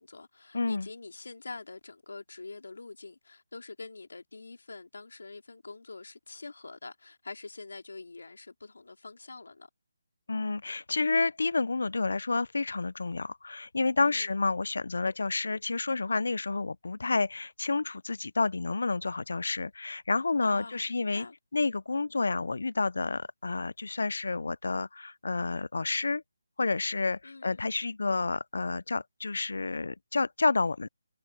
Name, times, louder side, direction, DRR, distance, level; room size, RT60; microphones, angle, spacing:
voice 1, 0.0-9.7 14.0-14.4 20.4-21.4 27.2-27.7, left 3 dB, 85° left, 3.4 m, -45 dB
voice 2, 0.5-0.9 10.3-21.3 21.5-26.2 26.6-30.9, left 3 dB, 65° left, 0.4 m, -30 dB
hypercardioid pair, 180°, 0 cm